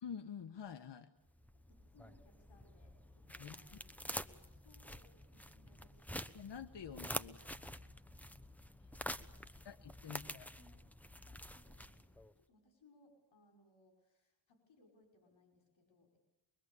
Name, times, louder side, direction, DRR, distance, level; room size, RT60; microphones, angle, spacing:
voice 1, 0.0-1.1 3.4-3.8 6.3-7.7 9.6-10.5, left 7 dB, 65° left, 9 dB, 1.3 m, -48 dB
sound 1, 1.3-12.3, equal, 5° left, 1.1 m, -48 dB
voice 2, 1.7-3.9 4.2-6.2 8.8-9.7 10.1-10.3 10.6-10.8 11.2-16.2, left 2 dB, 85° left, 3 dB, 5.8 m, -69 dB
23.5 x 23.5 x 8.5 m, 0.97 s
cardioid pair, 75°, 45 cm